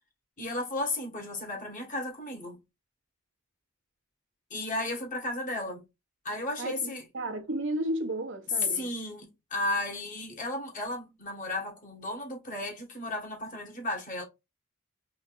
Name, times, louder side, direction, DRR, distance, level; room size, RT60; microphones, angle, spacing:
voice 1, 0.4-2.6 4.5-5.8 6.2-7.0 8.7-14.2, left 2 dB, 40° left, 1.7 m, -34 dB
voice 2, 6.6-8.9, right 1 dB, 65° right, 0.8 m, -33 dB
3.9 x 3.5 x 2.5 m
head